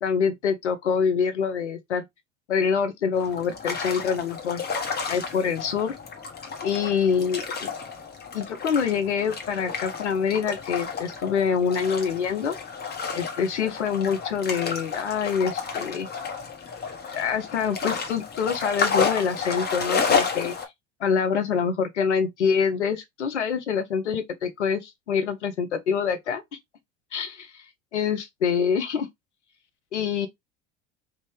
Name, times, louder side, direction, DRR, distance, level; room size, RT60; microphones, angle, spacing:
voice 1, 0.0-2.0 2.5-4.6 5.1-5.9 6.6-7.7 8.3-12.6 13.1-16.1 17.1-20.5 21.0-26.4 27.1-27.6 27.9-29.1 29.9-30.3, left 6 dB, 85° left, 0.8 m, -25 dB
sound 1, 3.1-20.7, left 5 dB, 30° left, 1.2 m, -31 dB
3.4 x 2.6 x 3.2 m
hypercardioid pair, 75°, 34 cm